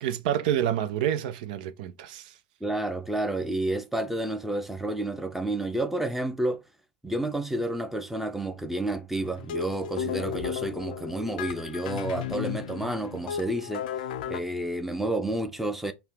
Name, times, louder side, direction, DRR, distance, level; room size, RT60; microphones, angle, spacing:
voice 1, 0.0-2.3, right 10 dB, 70° right, 0.6 m, -28 dB
voice 2, 2.6-6.6 7.0-13.9 14.3-15.9, right 1 dB, 5° right, 0.7 m, -30 dB
sound 1, 9.1-14.4, left 9 dB, 75° left, 0.4 m, -34 dB
5.6 x 2.3 x 3.4 m
hypercardioid pair, 95°, 5 cm